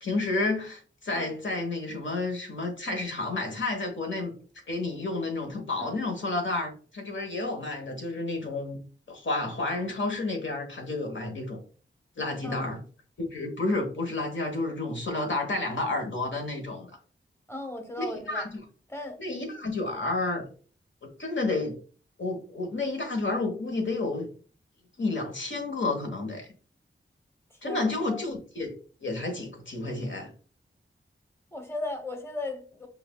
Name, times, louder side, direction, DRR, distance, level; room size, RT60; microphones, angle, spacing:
voice 1, 0.0-4.3 4.7-8.8 9.1-11.6 12.2-12.8 13.2-17.0 18.0-18.6 19.2-20.4 21.0-21.7 22.2-24.3 25.0-26.5 27.6-28.7 29.0-30.3, left 2 dB, 65° left, 1.2 m, -30 dB
voice 2, 12.4-12.8 17.5-18.5 18.9-19.2 27.6-28.2 31.5-32.9, left 2 dB, 10° left, 1.0 m, -37 dB
5.6 x 2.4 x 2.3 m
cardioid pair, 50°, 21 cm